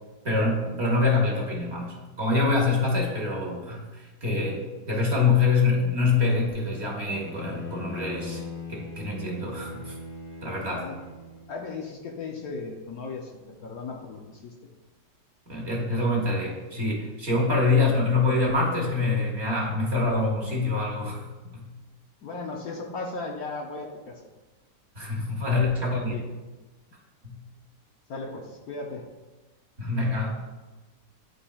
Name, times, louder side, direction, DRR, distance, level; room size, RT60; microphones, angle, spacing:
voice 1, 0.2-4.6 4.9-8.4 8.7-9.9 10.4-10.8 15.5-21.7 24.9-26.1 27.2-27.4 29.8-30.3, left 3 dB, 40° right, -1 dB, 1.3 m, -25 dB
Bowed string instrument, 7.1-11.5, left 2 dB, 85° left, 1.9 m, -40 dB
voice 2, 11.5-13.3 13.6-14.5 22.2-24.2 25.5-26.2 28.1-29.0, left 3 dB, 65° left, 1 dB, 1.1 m, -36 dB
11.0 x 4.2 x 2.3 m, 1.2 s
omnidirectional pair, 1.9 m